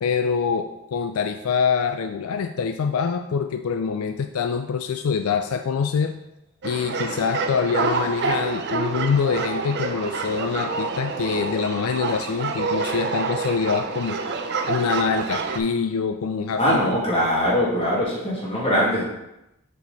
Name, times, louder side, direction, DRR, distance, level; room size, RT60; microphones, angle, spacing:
voice 1, 0.0-6.2 6.6-14.2 14.7-16.8, left 6 dB, 75° left, 7 dB, 0.4 m, -25 dB
sound 1, 6.6-15.6, right 4 dB, 50° right, 0.6 m, -27 dB
voice 2, 16.6-19.0, equal, 25° left, -6 dB, 2.1 m, -21 dB
7.1 x 4.6 x 4.0 m, 0.89 s
head